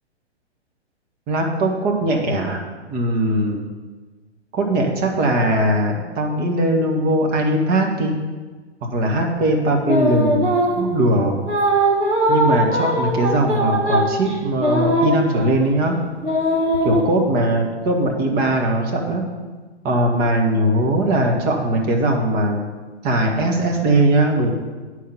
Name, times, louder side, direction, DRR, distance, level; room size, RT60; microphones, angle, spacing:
voice 1, 1.3-2.6 2.9-3.6 4.5-8.1 8.9-11.3 12.3-16.0 16.8-19.2 19.8-22.6 23.0-24.5, right 1 dB, 25° right, 1 dB, 1.4 m, -20 dB
sound 1, 9.8-10.9 11.5-15.7 16.2-17.0, right 1 dB, 85° right, 1.7 m, -20 dB
9.2 x 4.8 x 5.6 m, 1.3 s
figure-of-eight pair, 115°, 34 cm